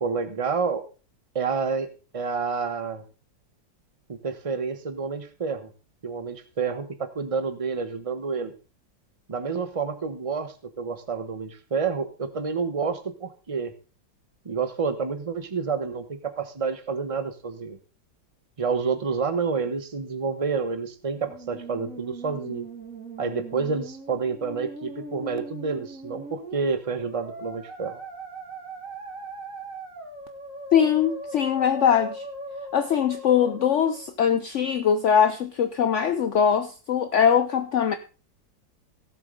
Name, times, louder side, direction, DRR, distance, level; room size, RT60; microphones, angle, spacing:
voice 1, 0.0-0.8 1.3-1.9 2.1-3.0 4.1-5.7 6.0-8.5 9.3-13.7 14.4-17.8 18.6-22.7 23.2-28.0, right 5 dB, 25° right, 0.9 m, -29 dB
Musical instrument, 21.1-34.1, right 2 dB, 45° right, 2.7 m, -40 dB
voice 2, 30.7-32.2 32.7-37.9, left 8 dB, 65° left, 0.7 m, -22 dB
17.0 x 7.5 x 3.9 m
omnidirectional pair, 2.1 m